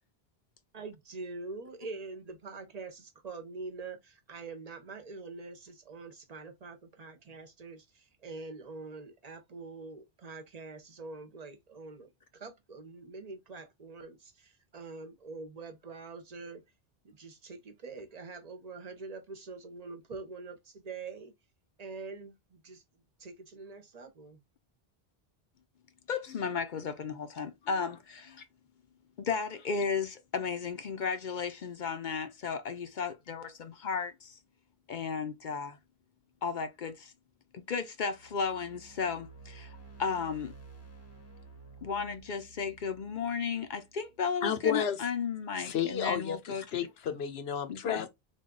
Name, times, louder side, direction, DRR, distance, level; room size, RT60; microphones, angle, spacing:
voice 1, 0.7-16.6 17.0-21.3 21.8-22.8 23.2-24.4, right 3 dB, 45° right, 0.8 m, -45 dB
voice 2, 26.1-28.4 29.2-34.4 34.9-35.8 36.4-37.1 37.5-40.5 41.8-46.6 47.7-48.1, left 5 dB, 55° left, 0.7 m, -34 dB
sound 1, 38.0-44.2, right 4 dB, 15° left, 0.7 m, -53 dB
voice 3, 44.4-45.0 45.6-48.1, left 8 dB, 80° left, 0.9 m, -32 dB
3.5 x 2.3 x 3.7 m
omnidirectional pair, 1.0 m